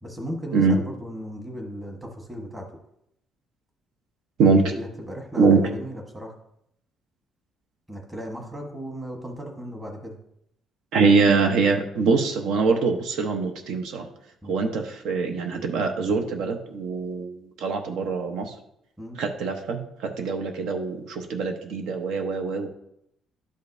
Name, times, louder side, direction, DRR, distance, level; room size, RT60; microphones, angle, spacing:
voice 1, 0.0-2.7 4.5-6.3 7.9-10.2 14.4-14.6 19.0-19.2, equal, 10° right, 2 dB, 1.2 m, -36 dB
voice 2, 10.9-14.0 14.5-18.5 19.2-19.8 20.2-22.7, right 4 dB, 75° right, 5 dB, 0.9 m, -23 dB
11.5 x 5.2 x 2.6 m, 0.76 s
cardioid pair, 165°, 0 cm